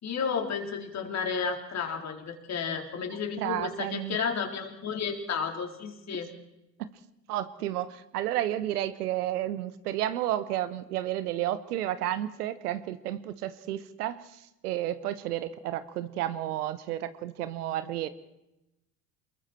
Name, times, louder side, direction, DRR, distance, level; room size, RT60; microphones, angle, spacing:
voice 1, 0.0-6.3, left 6 dB, 30° left, 3 dB, 4.1 m, -32 dB
voice 2, 3.4-4.2 6.8-6.9 7.3-18.1, right 13 dB, 65° right, 13 dB, 1.3 m, -32 dB
28.0 x 21.5 x 4.5 m, 0.92 s
figure-of-eight pair, 75°, 50 cm